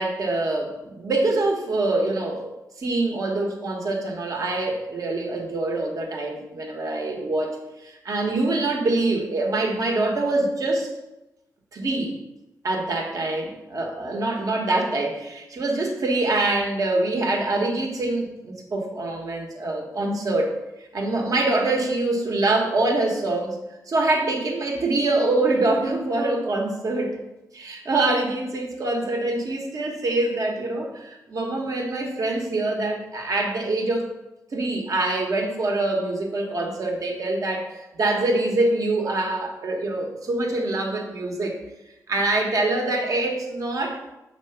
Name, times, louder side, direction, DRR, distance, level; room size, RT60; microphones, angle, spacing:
voice 1, 0.0-2.5 2.8-10.9 11.7-12.2 12.6-23.6 23.9-27.2 27.5-34.1 34.5-41.5 42.1-44.0, right 2 dB, 60° right, 1 dB, 1.3 m, -25 dB
6.5 x 3.0 x 5.7 m, 0.93 s
cardioid pair, 60°, 7 cm